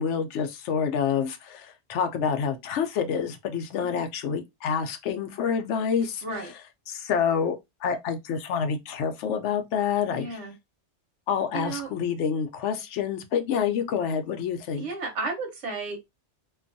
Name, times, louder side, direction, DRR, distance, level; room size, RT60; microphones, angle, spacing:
voice 1, 0.0-6.2 6.9-7.6 7.8-10.4 11.3-14.9, left 7 dB, 85° left, 0.9 m, -27 dB
voice 2, 6.2-6.5 10.1-10.5 11.5-11.9 14.8-16.0, right 3 dB, 85° right, 1.1 m, -33 dB
2.5 x 2.3 x 2.6 m
omnidirectional pair, 1.2 m